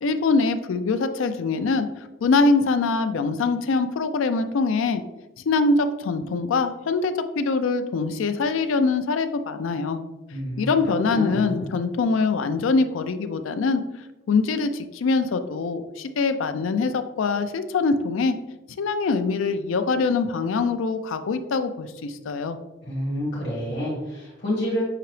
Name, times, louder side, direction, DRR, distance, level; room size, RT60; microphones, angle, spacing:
voice 1, 0.0-1.9 2.2-5.0 5.5-10.0 10.6-13.8 14.3-18.3 18.8-22.6, left 4 dB, 75° left, 10 dB, 0.4 m, -23 dB
voice 2, 10.3-10.7 11.1-11.7 22.8-24.8, equal, 50° left, -5 dB, 1.4 m, -28 dB
5.8 x 2.9 x 3.1 m, 1.0 s
head